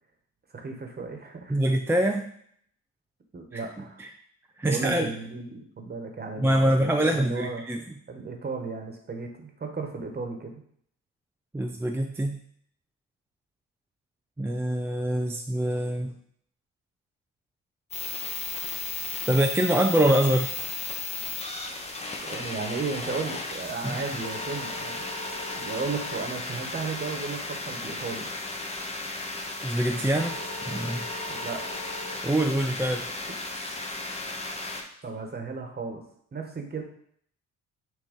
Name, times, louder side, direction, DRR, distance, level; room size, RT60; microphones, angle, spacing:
voice 1, 0.5-1.6 3.3-4.0 4.6-6.7 7.0-7.6 8.1-10.6 22.2-25.1 25.5-28.3 31.3-31.6 35.0-36.0 36.3-36.8, right 4 dB, 30° right, 4 dB, 1.2 m, -34 dB
voice 2, 1.5-2.3 3.5-4.1 4.6-5.1 6.4-7.8 11.5-12.4 14.4-16.1 19.3-20.6 23.8-24.0 29.6-30.4 30.7-31.1 32.2-33.1, right 1 dB, 10° right, 3 dB, 0.4 m, -25 dB
sound 1, 17.9-34.8, left 3 dB, 20° left, 1.0 m, -34 dB
6.2 x 3.0 x 5.2 m, 0.65 s
cardioid pair, 90°, 30 cm